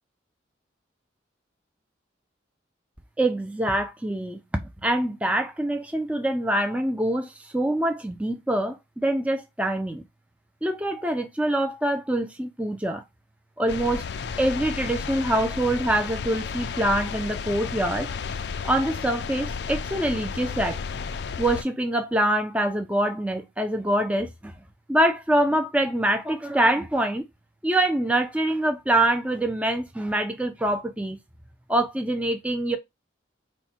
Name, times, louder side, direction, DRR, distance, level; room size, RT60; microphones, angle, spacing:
voice 1, 3.2-4.4 4.8-10.0 10.6-13.0 13.6-14.0 14.4-18.1 18.6-20.8 21.4-24.5 24.9-27.2 27.6-31.2 31.7-32.8, right 1 dB, 5° right, 0.4 m, -25 dB
sound 1, 13.7-21.6, left 5 dB, 60° left, 0.4 m, -33 dB
4.4 x 2.2 x 4.2 m
head